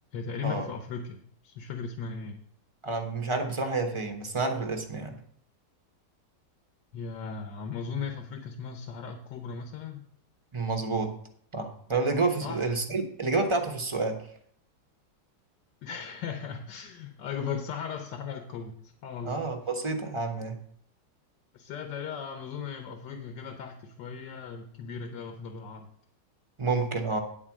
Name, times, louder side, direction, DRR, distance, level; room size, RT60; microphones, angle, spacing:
voice 1, 0.1-2.4 6.9-10.0 12.4-12.7 15.8-19.4 21.5-25.9, left 6 dB, 75° left, 5 dB, 1.5 m, -37 dB
voice 2, 2.8-5.2 10.5-11.1 11.5-14.2 19.2-20.6 26.6-27.2, right 3 dB, 25° right, 4 dB, 0.8 m, -29 dB
10.0 x 4.3 x 7.2 m, 0.64 s
omnidirectional pair, 1.9 m